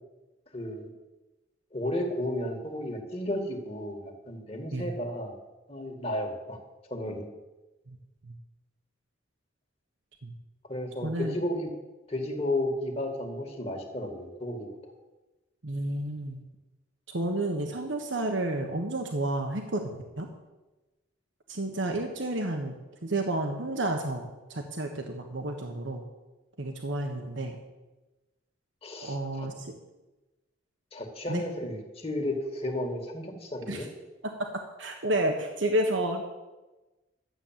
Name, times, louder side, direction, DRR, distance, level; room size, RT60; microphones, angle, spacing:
voice 1, 0.5-0.9 1.7-5.4 5.7-6.6 6.9-7.3 10.7-11.7 12.1-14.9 28.8-29.5 30.9-33.9, left 1 dB, 30° left, 3 dB, 2.0 m, -33 dB
voice 2, 11.0-11.3 15.6-16.4 17.1-20.3 21.5-22.8 23.0-26.0 26.6-27.6 29.0-29.7 31.3-31.4 33.7-33.8 34.2-34.5 34.8-36.2, right 1 dB, 70° right, 4 dB, 1.3 m, -31 dB
12.5 x 8.3 x 7.5 m, 1.1 s
head